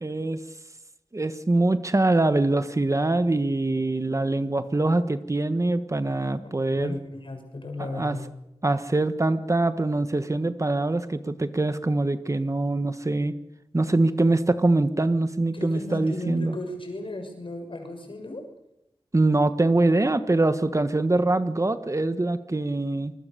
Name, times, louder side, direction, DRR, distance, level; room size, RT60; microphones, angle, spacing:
voice 1, 0.0-0.4 1.1-6.9 7.9-8.2 8.6-13.4 13.7-16.5 19.1-23.1, right 2 dB, 35° right, 11 dB, 1.4 m, -23 dB
voice 2, 6.4-8.4 15.5-18.4 21.3-21.4, left 2 dB, 65° left, 4 dB, 6.3 m, -35 dB
26.0 x 21.5 x 6.9 m, 0.88 s
wide cardioid pair, 70°, 10 cm